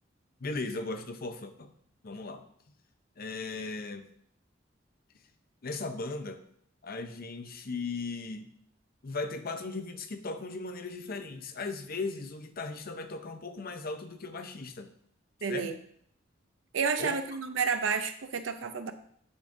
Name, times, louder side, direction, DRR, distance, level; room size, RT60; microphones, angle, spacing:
voice 1, 0.4-1.7 2.0-2.5 3.2-4.1 5.6-6.4 6.8-8.5 9.0-14.9 15.5-15.8 17.0-17.2, left 3 dB, 50° left, 8 dB, 0.7 m, -37 dB
voice 2, 15.4-15.7 16.7-18.9, right 5 dB, 85° right, 9 dB, 0.6 m, -30 dB
10.5 x 5.1 x 2.6 m, 0.66 s
head